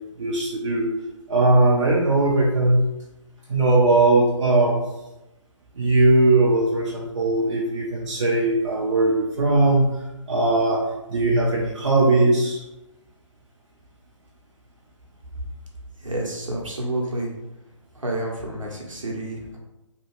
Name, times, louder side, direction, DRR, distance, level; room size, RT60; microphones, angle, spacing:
voice 1, 0.2-0.8 1.3-2.8 3.5-4.8 5.8-9.9 10.3-12.6, right 2 dB, 60° right, -4 dB, 0.6 m, -19 dB
voice 2, 16.0-17.3 17.9-19.6, right 1 dB, 80° right, -2 dB, 1.0 m, -29 dB
3.0 x 2.3 x 3.0 m, 0.96 s
figure-of-eight pair, 145°, 16 cm